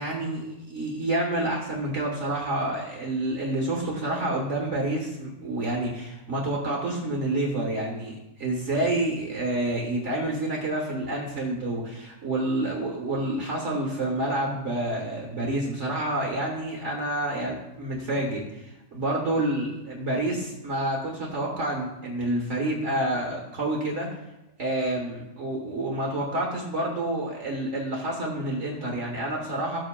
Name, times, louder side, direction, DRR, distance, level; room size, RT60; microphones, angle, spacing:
voice 1, 0.0-24.1 24.6-29.8, right 1 dB, 55° right, -1 dB, 1.6 m, -28 dB
14.0 x 7.3 x 2.3 m, 0.92 s
omnidirectional pair, 1.5 m